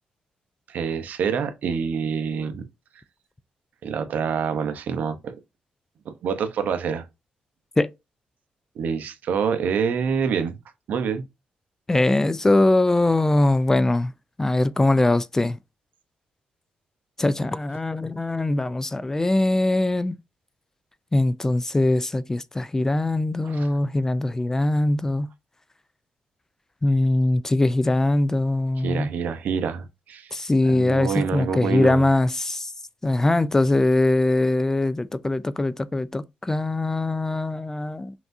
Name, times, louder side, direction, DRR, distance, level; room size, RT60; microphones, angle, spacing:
voice 1, 0.7-2.6 3.8-5.4 6.1-7.0 8.8-10.6 10.9-11.2 23.4-23.7 28.8-30.3 30.7-32.1, right 6 dB, 70° right, 0.8 m, -26 dB
voice 2, 11.9-14.1 14.4-15.6 17.2-20.2 21.1-25.3 26.8-29.1 30.3-32.7 33.0-38.1, left 2 dB, 15° left, 0.3 m, -22 dB
5.8 x 2.6 x 2.6 m
cardioid pair, 95°, 3 cm